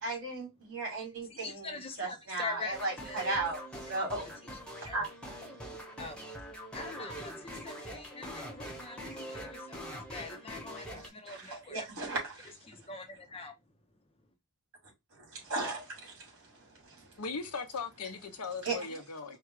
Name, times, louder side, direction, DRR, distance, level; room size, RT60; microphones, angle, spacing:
voice 1, 0.0-3.6 3.9-4.2 4.8-5.1 11.3-12.5 15.2-17.2 18.6-18.9, right 3 dB, 60° right, 3.0 m, -36 dB
voice 2, 1.3-3.4 4.8-5.0 6.0-6.2 6.7-11.9 12.7-13.5, left 4 dB, 25° left, 0.7 m, -44 dB
sound 1, 2.7-11.1, equal, 5° left, 1.1 m, -44 dB
voice 3, 17.2-19.4, left 4 dB, 85° left, 0.8 m, -38 dB
4.7 x 2.3 x 4.7 m
head